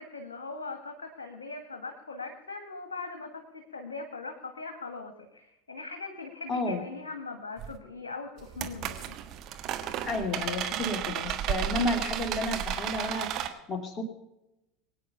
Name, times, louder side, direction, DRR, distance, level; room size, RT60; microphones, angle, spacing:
voice 1, 0.0-9.2, left 3 dB, 75° left, 6 dB, 1.5 m, -40 dB
voice 2, 6.5-6.8 10.1-14.0, left 2 dB, 30° left, 5 dB, 2.4 m, -31 dB
sound 1, 7.6-7.8 8.4-13.5, right 10 dB, 45° right, 1.5 m, -33 dB
22.5 x 9.3 x 5.6 m, 0.94 s
figure-of-eight pair, 75°, 0 cm